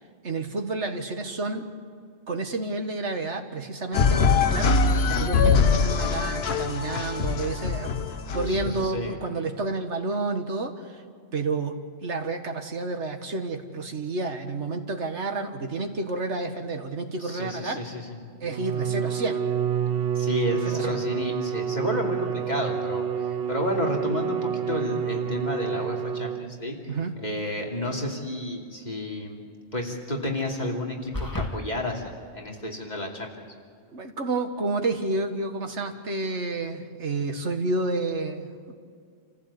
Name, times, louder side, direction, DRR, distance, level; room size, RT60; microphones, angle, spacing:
voice 1, 0.2-1.7 2.3-11.0 11.3-18.0 18.4-19.4 20.5-21.0 26.9-27.2 33.9-38.7, right 3 dB, 85° right, 6 dB, 2.0 m, -30 dB
sound 1, 3.9-8.8, left 5 dB, 65° left, 1.2 m, -23 dB
voice 2, 8.5-9.2 17.2-18.2 20.1-23.0 23.5-26.7 27.2-29.4 29.7-33.4, left 1 dB, 40° left, 0 dB, 2.9 m, -31 dB
Bowed string instrument, 18.4-26.7, right 8 dB, 60° right, 0.9 m, -28 dB
sound 2, 31.1-31.5, left 1 dB, 15° left, 2.0 m, -29 dB
28.0 x 15.0 x 8.6 m, 2.2 s
omnidirectional pair, 1.2 m